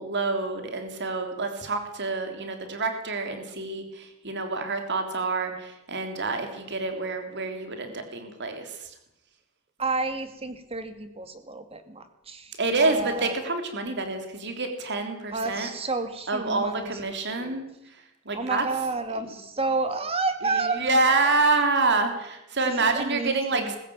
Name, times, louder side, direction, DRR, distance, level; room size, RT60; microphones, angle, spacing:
voice 1, 0.0-8.9 12.6-15.7 16.3-17.7 18.3-18.7 20.4-23.8, right 3 dB, 55° right, 6 dB, 3.4 m, -27 dB
voice 2, 9.8-12.5 12.8-13.3 15.3-17.6 18.3-21.2 21.5-21.6 22.6-23.8, right 3 dB, 25° right, 9 dB, 2.1 m, -31 dB
20.0 x 15.5 x 8.8 m, 0.88 s
head